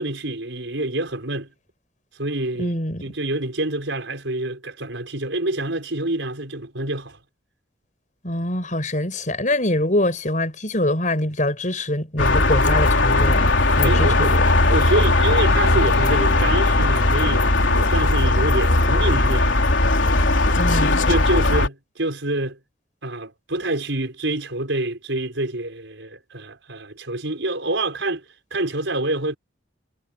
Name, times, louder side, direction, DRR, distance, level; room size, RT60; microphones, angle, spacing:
voice 1, 0.0-1.5 2.2-7.2 13.8-19.6 20.8-22.6 23.0-28.2 28.5-29.4, right 2 dB, 80° right, 4.8 m, -27 dB
voice 2, 2.6-3.1 8.2-13.5 13.8-14.5 20.6-21.0, left 1 dB, 40° left, 6.4 m, -24 dB
sound 1, 12.2-21.7, left 2 dB, 80° left, 3.5 m, -18 dB
head